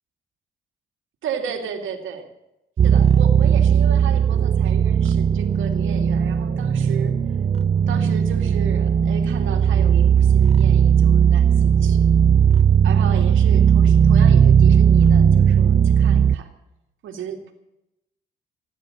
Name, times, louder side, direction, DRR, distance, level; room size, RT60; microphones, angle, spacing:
voice 1, 1.2-2.3 2.8-7.4 7.9-12.0 12.8-16.5 17.0-17.4, right 7 dB, 80° right, 5 dB, 2.5 m, -34 dB
sound 1, 2.8-16.4, right 7 dB, 35° right, 0.5 m, -16 dB
16.5 x 9.4 x 7.7 m, 0.91 s
cardioid pair, 90°, 20 cm